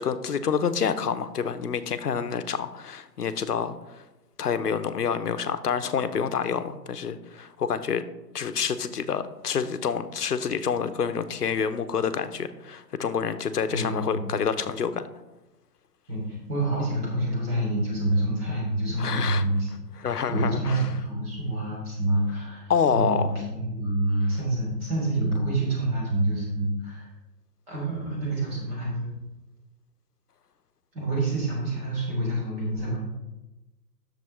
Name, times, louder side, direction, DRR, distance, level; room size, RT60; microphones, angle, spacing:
voice 1, 0.0-4.0 4.4-8.0 8.3-15.1 19.0-19.4 20.0-20.9 22.7-23.3, left 6 dB, 65° left, 12 dB, 0.8 m, -27 dB
voice 2, 13.7-14.3 16.1-19.7 20.3-27.1 27.7-29.1 30.9-33.0, right 1 dB, 35° right, -4 dB, 3.1 m, -27 dB
10.5 x 6.8 x 3.2 m, 1.0 s
figure-of-eight pair, 130°, 50 cm